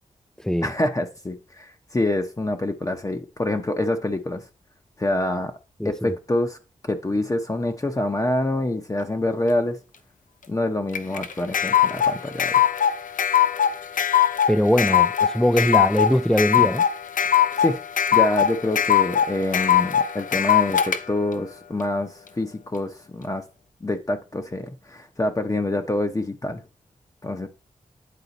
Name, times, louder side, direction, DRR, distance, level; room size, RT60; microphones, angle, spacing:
voice 1, 0.6-4.4 5.0-5.5 5.8-6.6 6.8-9.8 10.5-12.5 17.6-17.8 18.1-23.4 23.8-26.6 27.2-27.5, left 1 dB, 25° left, 0.8 m, -26 dB
voice 2, 5.8-6.1 14.5-16.8, equal, 5° left, 0.3 m, -21 dB
sound 1, 10.9-21.0, left 9 dB, 70° left, 0.6 m, -20 dB
8.5 x 3.9 x 4.0 m
cardioid pair, 55°, 14 cm